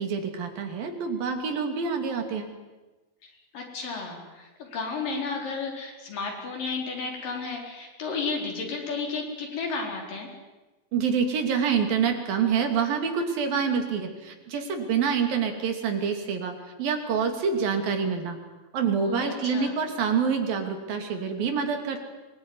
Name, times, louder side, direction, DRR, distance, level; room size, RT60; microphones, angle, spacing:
voice 1, 0.0-2.5 10.9-18.4 18.7-22.0, right 6 dB, 80° right, 5 dB, 4.5 m, -27 dB
voice 2, 3.2-10.3 19.0-19.8, left 4 dB, 70° left, 0 dB, 6.1 m, -33 dB
24.5 x 20.0 x 9.8 m, 1.2 s
omnidirectional pair, 4.1 m